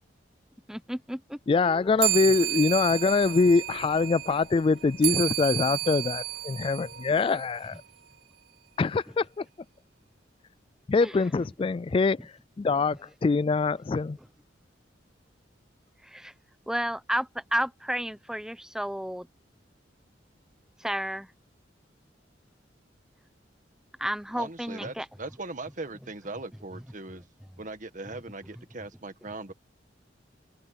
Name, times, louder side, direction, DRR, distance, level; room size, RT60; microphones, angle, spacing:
voice 1, 0.7-1.9 11.0-11.1 16.0-16.3 16.7-19.3 20.8-21.3 24.0-25.1, equal, 5° right, 1.0 m, -32 dB
voice 2, 1.5-7.8 8.8-9.4 10.9-14.2, left 4 dB, 30° left, 0.3 m, -24 dB
sound 1, 2.0-7.8, right 18 dB, 65° right, 4.5 m, -32 dB
voice 3, 24.3-27.2 27.6-29.5, right 2 dB, 45° right, 1.7 m, -39 dB
open air
head